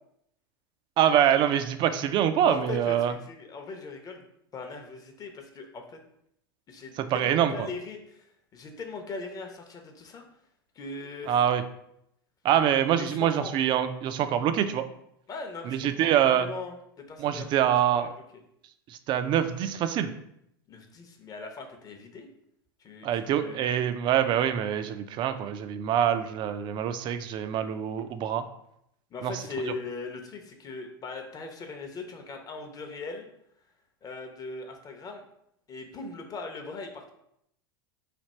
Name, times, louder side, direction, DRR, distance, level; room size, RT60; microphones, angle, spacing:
voice 1, 1.0-3.1 7.0-7.7 11.3-11.6 12.4-14.8 15.6-16.5 17.2-18.1 18.9-20.1 23.0-28.5 29.2-29.7, right 10 dB, 40° right, 10 dB, 0.4 m, -25 dB
voice 2, 2.4-4.2 4.5-6.0 6.7-8.3 8.5-10.2 10.8-11.4 13.0-13.5 15.3-17.5 17.9-18.1 20.7-22.3 22.8-23.6 29.1-33.2 34.0-35.2 35.7-37.1, left 3 dB, 30° left, 4 dB, 0.7 m, -39 dB
3.4 x 2.3 x 4.2 m, 0.75 s
hypercardioid pair, 90°, 12 cm